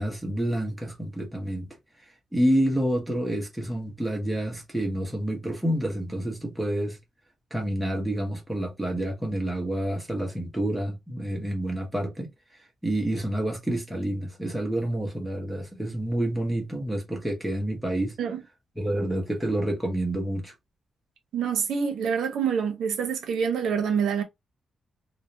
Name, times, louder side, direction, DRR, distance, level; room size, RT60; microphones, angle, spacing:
voice 1, 0.0-1.7 2.3-7.0 7.5-12.3 12.8-18.2 18.8-20.5, right 1 dB, ahead, 0.7 m, -28 dB
voice 2, 21.3-24.2, right 7 dB, 85° right, 0.6 m, -26 dB
2.3 x 2.1 x 2.7 m
wide cardioid pair, 170°, 0 cm